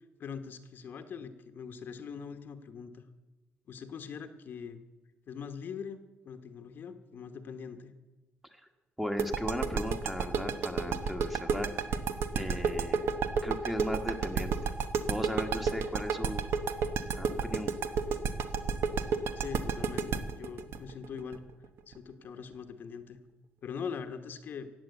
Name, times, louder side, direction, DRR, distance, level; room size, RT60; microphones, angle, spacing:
voice 1, 0.0-3.0 3.7-4.8 5.3-6.0 6.2-7.9 19.3-21.4 21.9-23.2 23.6-24.7, left 6 dB, 50° left, 8 dB, 1.1 m, -42 dB
voice 2, 9.0-12.0 12.3-13.1 13.4-14.7 15.1-16.4 17.1-17.7, equal, 5° right, 5 dB, 1.3 m, -37 dB
sound 1, 9.2-21.9, right 6 dB, 65° right, 1.0 m, -30 dB
15.5 x 9.0 x 8.1 m, 1.2 s
cardioid pair, 145°, 4 cm